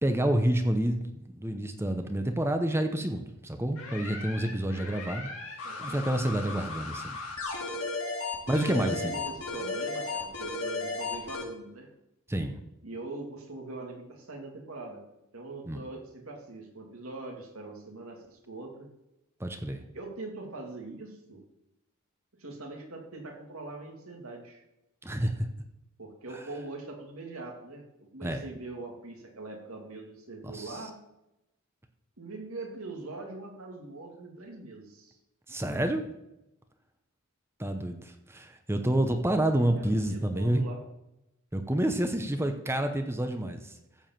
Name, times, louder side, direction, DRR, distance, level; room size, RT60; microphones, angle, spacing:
voice 1, 0.0-5.3 5.8-7.2 8.5-9.2 12.3-12.6 15.6-15.8 19.4-19.8 25.0-25.5 28.2-28.4 30.4-30.8 35.5-36.0 37.6-40.7 41.5-43.7, right 1 dB, 10° right, 6 dB, 0.8 m, -28 dB
sound 1, 3.8-11.4, left 3 dB, 80° left, 2.8 m, -35 dB
voice 2, 5.6-6.1 8.7-11.9 12.8-15.0 15.3-18.9 19.9-21.4 22.4-24.6 26.0-30.9 32.2-35.2 39.5-40.8, right 2 dB, 75° right, 1 dB, 2.5 m, -42 dB
14.5 x 4.8 x 7.4 m, 0.90 s
head